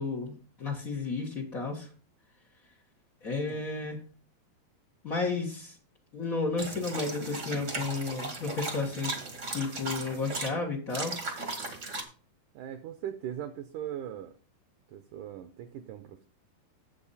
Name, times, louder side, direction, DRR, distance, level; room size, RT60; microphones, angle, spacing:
voice 1, 0.0-1.9 3.2-4.0 5.0-5.8 6.1-9.1 9.5-11.2, left 4 dB, 80° left, 1 dB, 0.7 m, -32 dB
sound 1, 6.6-10.5 10.9-12.0, right 3 dB, 50° right, 0.8 m, -37 dB
voice 2, 12.5-14.3 14.9-16.2, right 10 dB, 75° right, 8 dB, 1.9 m, -40 dB
8.6 x 7.7 x 4.1 m, 0.39 s
omnidirectional pair, 4.2 m